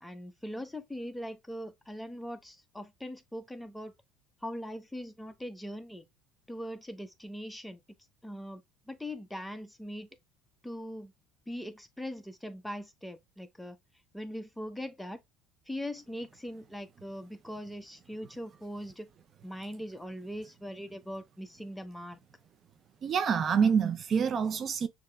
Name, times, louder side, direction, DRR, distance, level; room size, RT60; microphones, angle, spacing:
voice 1, 0.0-3.9 4.4-6.0 6.5-7.8 8.2-8.6 8.9-10.1 10.6-11.1 11.5-13.8 14.1-15.2 15.7-19.1 19.4-22.2, equal, 5° left, 0.9 m, -41 dB
voice 2, 23.0-24.9, right 6 dB, 40° right, 0.4 m, -26 dB
6.5 x 2.9 x 2.2 m
supercardioid pair, 85°, 0 cm